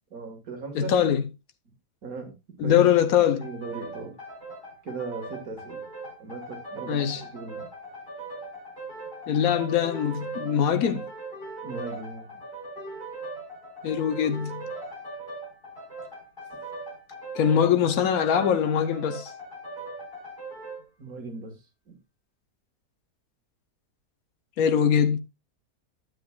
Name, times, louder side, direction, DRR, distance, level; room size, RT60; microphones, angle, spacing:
voice 1, 0.1-0.9 2.0-2.8 3.3-4.2 4.8-5.8 6.2-7.7 11.6-12.3 21.0-21.6 21.9-22.0, right 4 dB, 60° right, 2.2 m, -38 dB
voice 2, 0.7-1.2 2.6-3.5 6.9-7.2 9.3-11.0 13.8-14.6 17.3-19.3 24.6-25.2, left 8 dB, 65° left, 1.3 m, -22 dB
sound 1, 3.4-20.8, right 2 dB, 35° left, 4.7 m, -40 dB
12.0 x 7.7 x 2.3 m
omnidirectional pair, 1.7 m